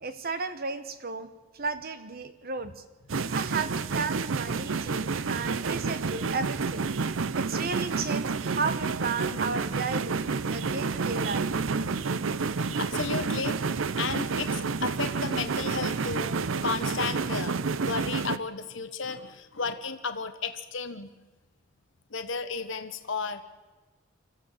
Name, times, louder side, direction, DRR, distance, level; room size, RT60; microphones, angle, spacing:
voice 1, 0.0-1.3 1.5-2.8 3.3-6.9 7.3-11.5, right 4 dB, 50° right, 11 dB, 1.2 m, -34 dB
sound 1, 3.1-18.4, right 4 dB, 85° right, 0.6 m, -29 dB
voice 2, 11.8-13.6 14.0-21.1 22.1-23.4, left 5 dB, 70° left, 9 dB, 1.1 m, -34 dB
25.0 x 14.5 x 7.4 m, 1.2 s
head